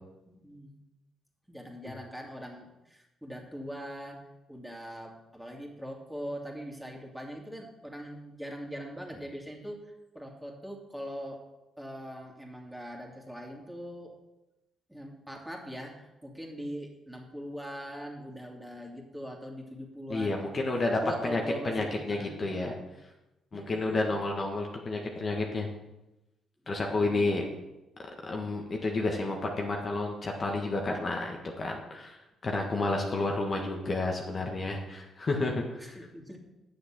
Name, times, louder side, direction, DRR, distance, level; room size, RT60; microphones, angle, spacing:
voice 1, 0.3-0.8 1.5-4.2 4.5-11.4 11.8-14.2 14.9-20.7 21.0-22.5 23.5-24.2 26.8-27.4 35.8-36.4, equal, 5° right, 0 dB, 2.7 m, -42 dB
voice 2, 20.1-21.4 21.6-22.7 23.5-25.7 26.7-27.4 28.2-35.9, left 2 dB, 40° left, 1 dB, 1.6 m, -30 dB
9.5 x 6.9 x 6.1 m, 0.98 s
hypercardioid pair, 45°, 0 cm